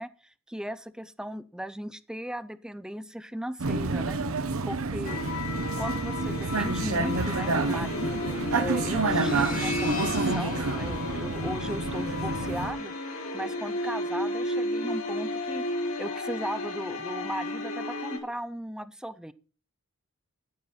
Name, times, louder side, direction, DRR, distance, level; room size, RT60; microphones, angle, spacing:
voice 1, 0.0-5.2 5.8-12.9 13.3-19.3, right 1 dB, 5° right, 15 dB, 0.4 m, -37 dB
Vehicle, 3.6-12.7, right 3 dB, 75° right, 0.9 m, -29 dB
sound 1, 5.0-18.2, left 2 dB, 90° left, 3.3 m, -33 dB
sound 2, 9.0-12.3, left 2 dB, 40° left, 1.7 m, -39 dB
9.6 x 9.2 x 4.3 m, 0.38 s
head